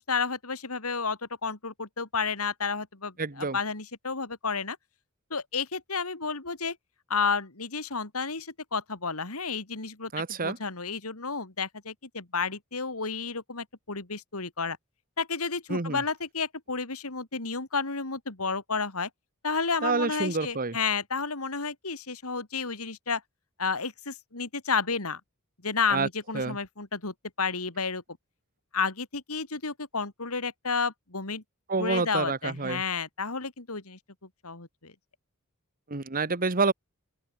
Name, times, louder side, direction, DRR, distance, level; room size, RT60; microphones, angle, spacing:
voice 1, 0.0-4.8 5.3-6.8 7.1-10.1 10.4-14.8 15.2-19.1 19.4-23.2 23.6-25.2 25.6-28.0 28.7-31.4 31.8-34.0 34.4-34.9, left 5 dB, 85° left, 3.1 m, -31 dB
voice 2, 3.2-3.6 10.1-10.6 15.7-16.0 19.8-20.8 25.9-26.1 26.3-26.6 31.7-32.8 35.9-36.7, right 4 dB, 40° right, 1.4 m, -28 dB
open air
head